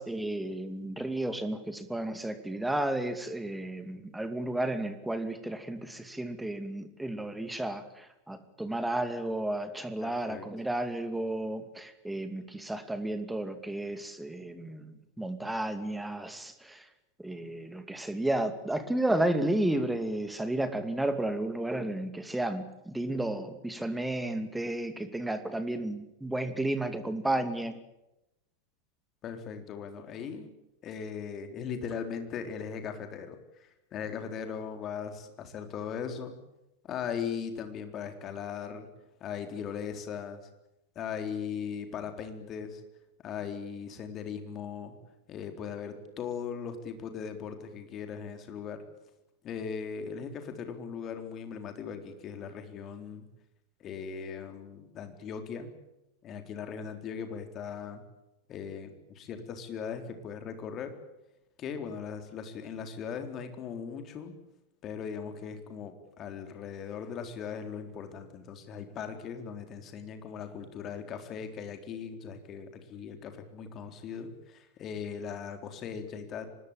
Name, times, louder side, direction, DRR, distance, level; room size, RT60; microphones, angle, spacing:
voice 1, 0.0-16.8 17.2-27.8, right 1 dB, 5° right, 10 dB, 2.5 m, -32 dB
voice 2, 10.0-10.5 29.2-30.5 30.8-36.3 36.8-38.9 39.2-40.4 41.0-42.8 43.2-45.0 45.3-48.8 49.4-53.3 53.8-55.7 56.2-58.0 58.5-60.9 61.6-64.3 64.8-76.4, left 7 dB, 30° left, 7 dB, 3.9 m, -39 dB
25.0 x 20.5 x 8.9 m, 0.91 s
figure-of-eight pair, 90°, 0 cm